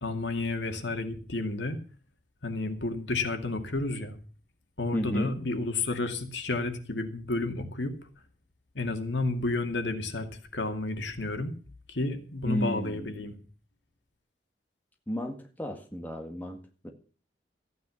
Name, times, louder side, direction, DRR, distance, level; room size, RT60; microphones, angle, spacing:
voice 1, 0.0-1.8 2.4-4.2 4.8-8.0 8.7-11.5 11.9-13.3, left 2 dB, 90° left, 6 dB, 2.4 m, -31 dB
voice 2, 4.9-5.3 12.5-13.4 15.1-16.9, equal, 10° left, 3 dB, 1.9 m, -33 dB
14.5 x 9.6 x 7.1 m, 0.37 s
head